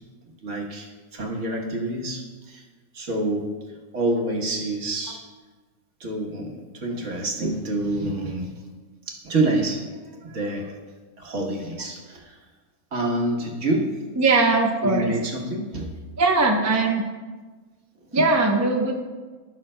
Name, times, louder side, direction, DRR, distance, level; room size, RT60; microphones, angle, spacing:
voice 1, 0.2-2.6 2.9-5.2 6.0-8.5 9.1-10.8 11.2-12.4 12.9-14.0 14.8-16.0 18.1-18.2, right 2 dB, 55° right, 0 dB, 1.5 m, -27 dB
voice 2, 14.2-15.1 16.2-17.0 18.1-18.9, right 3 dB, 25° right, 1 dB, 0.4 m, -20 dB
16.5 x 5.8 x 2.2 m, 1.4 s
omnidirectional pair, 1.6 m